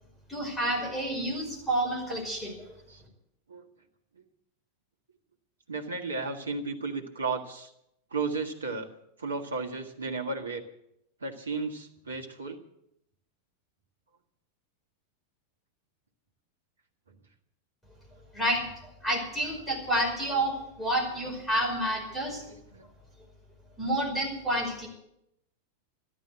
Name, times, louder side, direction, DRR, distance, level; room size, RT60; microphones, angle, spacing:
voice 1, 0.3-2.8 18.3-22.4 23.8-24.9, right 1 dB, 5° left, 0 dB, 5.4 m, -29 dB
voice 2, 5.7-7.7 8.1-8.9 9.2-10.6 11.2-12.6 22.4-22.9, right 4 dB, 70° right, 3 dB, 1.7 m, -34 dB
13.5 x 11.5 x 7.9 m, 0.80 s
figure-of-eight pair, 90°, 0 cm